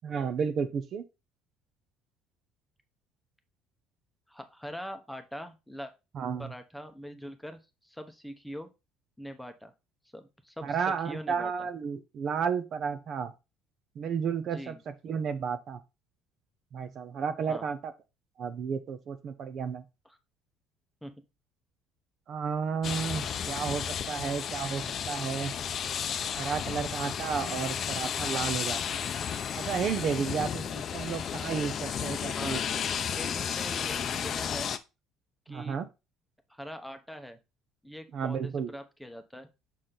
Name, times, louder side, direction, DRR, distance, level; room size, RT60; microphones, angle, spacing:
voice 1, 0.0-1.0 6.1-6.5 10.6-13.3 14.0-15.8 16.7-17.9 18.4-19.8 22.3-25.5 26.4-28.8 29.6-32.8 35.5-35.9 38.1-38.7, right 6 dB, 50° right, 10 dB, 0.7 m, -32 dB
voice 2, 4.3-5.9 6.4-8.7 9.2-9.7 10.1-11.7 14.5-14.8 17.5-17.7 20.0-20.2 21.0-21.1 32.3-32.6 33.0-34.7 35.5-35.8 36.5-37.4 37.8-39.5, equal, ahead, 7 dB, 0.9 m, -43 dB
sound 1, 22.8-34.8, left 8 dB, 45° left, 0.6 m, -33 dB
6.5 x 4.2 x 3.9 m, 0.26 s
cardioid pair, 115°, 0 cm